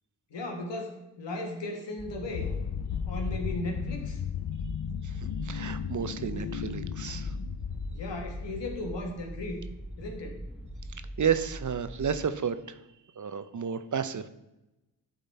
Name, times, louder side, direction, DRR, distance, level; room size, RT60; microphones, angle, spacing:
voice 1, 0.3-2.5 3.1-4.2 7.9-9.6 10.0-10.4, left 1 dB, 85° left, 3 dB, 1.5 m, -36 dB
sound 1, 2.0-12.3, right 1 dB, ahead, 1.0 m, -42 dB
sound 2, 2.3-9.1, left 9 dB, 60° left, 0.5 m, -35 dB
voice 2, 5.0-7.3 11.2-12.8 13.2-14.3, right 7 dB, 45° right, 12 dB, 0.7 m, -31 dB
10.5 x 3.9 x 4.2 m, 0.94 s
cardioid pair, 45°, 42 cm